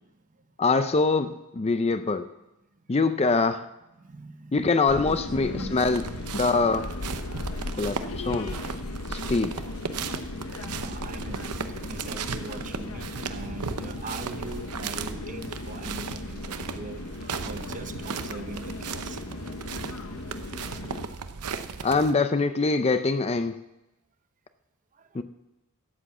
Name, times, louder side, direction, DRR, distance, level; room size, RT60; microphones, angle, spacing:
voice 1, 0.6-2.3 2.9-3.7 4.5-6.0 6.3-6.9 7.8-8.6 9.1-9.6 21.8-23.6 25.1-25.2, left 3 dB, 30° left, 0.5 m, -24 dB
voice 2, 4.0-5.8 7.6-8.5 10.7-19.2 21.1-21.8 24.9-25.2, right 2 dB, 35° right, 0.9 m, -42 dB
sound 1, 4.9-21.1, left 2 dB, 65° left, 0.9 m, -37 dB
sound 2, 5.8-22.1, right 5 dB, 90° right, 0.8 m, -37 dB
13.0 x 8.3 x 7.1 m
head